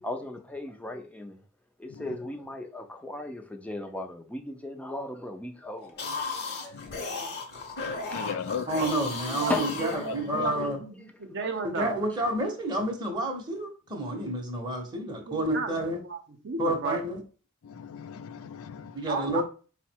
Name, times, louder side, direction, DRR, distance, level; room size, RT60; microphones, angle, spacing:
voice 1, 0.0-1.4 1.8-6.2 6.6-7.3 8.1-8.5 8.7-9.0 9.5-9.7 9.9-10.1 10.4-10.7, left 2 dB, 5° left, 0.4 m, -37 dB
sound 1, 5.8-10.6, left 4 dB, 50° left, 0.9 m, -35 dB
voice 2, 7.8-8.7 10.1-10.5 17.6-19.0, left 7 dB, 65° left, 0.4 m, -37 dB
voice 3, 8.7-10.8 11.6-16.0 16.6-17.2 18.9-19.4, right 1 dB, 20° right, 0.7 m, -29 dB
voice 4, 9.3-12.0 15.3-17.0 19.1-19.4, right 4 dB, 55° right, 0.7 m, -34 dB
4.7 x 2.1 x 4.3 m
head